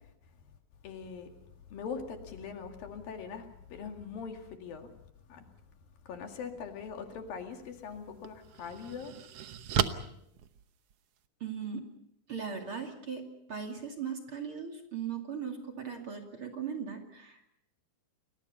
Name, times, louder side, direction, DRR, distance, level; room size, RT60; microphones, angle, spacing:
voice 1, 0.8-1.3 1.7-4.9 5.3-5.5 6.1-9.1, left 6 dB, 75° left, 4 dB, 3.9 m, -42 dB
sound 1, 7.5-7.7 8.2-11.3, right 8 dB, 75° right, 1.4 m, -35 dB
voice 2, 11.4-11.8 12.3-17.4, right 7 dB, 40° right, 3 dB, 2.9 m, -38 dB
30.0 x 21.5 x 5.6 m, 0.78 s
omnidirectional pair, 4.2 m